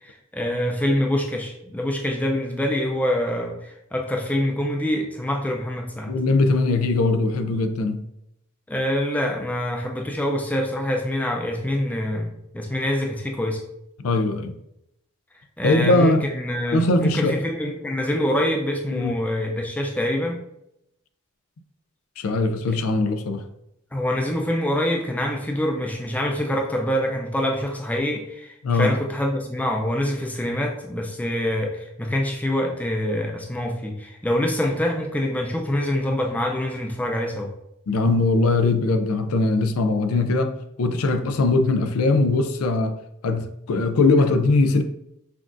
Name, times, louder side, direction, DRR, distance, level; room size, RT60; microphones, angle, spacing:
voice 1, 0.0-6.1 8.7-13.6 15.6-20.4 23.9-37.5, left 1 dB, 5° left, 0.4 m, -25 dB
voice 2, 6.1-8.0 14.0-14.6 15.6-16.2 16.7-17.4 18.9-19.2 22.2-23.4 28.6-29.0 37.9-43.0 43.2-44.8, left 3 dB, 85° left, 0.4 m, -21 dB
5.8 x 2.4 x 2.5 m
head